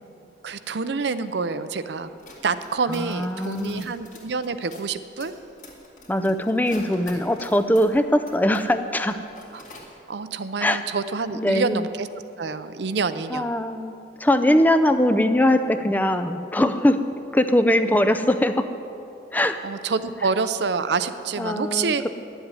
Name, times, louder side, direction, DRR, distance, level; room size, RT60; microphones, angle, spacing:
voice 1, 0.4-2.1 2.4-5.3 7.1-7.2 9.5-9.6 10.1-12.1 12.4-13.5 19.6-22.1, right 4 dB, 70° right, 12 dB, 0.6 m, -27 dB
sound 1, 2.1-8.7 9.0-9.9, left 2 dB, 40° left, 2.2 m, -46 dB
voice 2, 2.9-3.9 6.1-9.2 10.6-10.8 11.4-11.9 13.3-17.0 17.3-18.7 19.3-19.6 21.4-22.1, left 1 dB, 10° left, 9 dB, 0.4 m, -21 dB
11.0 x 8.0 x 9.7 m, 2.7 s
head